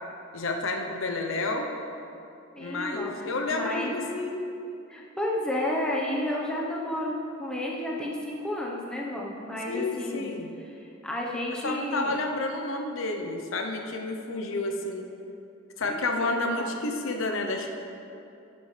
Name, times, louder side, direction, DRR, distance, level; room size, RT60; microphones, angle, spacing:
voice 1, 0.3-1.7 2.6-4.4 9.7-10.5 11.6-15.1 15.8-17.7, left 2 dB, 75° left, 3 dB, 0.8 m, -30 dB
voice 2, 2.5-4.0 4.9-12.2 15.9-16.7, left 1 dB, 5° left, -4 dB, 0.9 m, -32 dB
11.0 x 8.2 x 3.3 m, 2.7 s
head